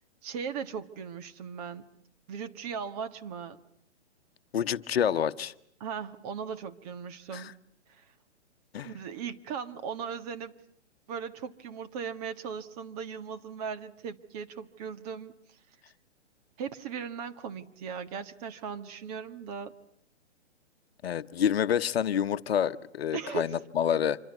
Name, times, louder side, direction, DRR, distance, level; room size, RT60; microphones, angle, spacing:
voice 1, 0.2-1.9 2.3-3.6 5.8-7.6 8.0-8.1 8.8-10.5 11.1-15.3 16.6-19.7 23.1-23.5, right 6 dB, 35° right, 10 dB, 1.6 m, -38 dB
voice 2, 4.5-5.5 7.3-7.5 8.7-8.9 21.0-24.2, left 9 dB, 60° left, 11 dB, 1.1 m, -28 dB
26.5 x 26.0 x 8.2 m, 0.64 s
hypercardioid pair, 145°, 35 cm